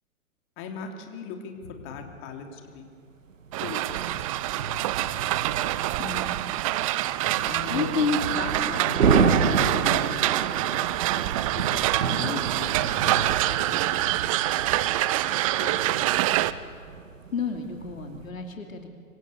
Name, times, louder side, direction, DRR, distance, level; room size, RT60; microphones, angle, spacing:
voice 1, 0.6-2.9 3.6-4.3 7.4-8.0 8.4-10.4 11.5-12.7 13.0-14.0 15.3-15.9, left 5 dB, 30° left, 3 dB, 3.4 m, -39 dB
sound 1, 2.0-2.2 3.3-18.3, right 5 dB, 65° right, 2.2 m, -30 dB
sound 2, 3.5-16.5, right 15 dB, 25° right, 0.6 m, -26 dB
voice 2, 6.0-6.4 7.7-8.2 12.2-12.4 17.3-18.9, left 5 dB, 70° left, 4 dB, 2.9 m, -30 dB
27.0 x 25.0 x 8.2 m, 2.3 s
figure-of-eight pair, 115°, 42 cm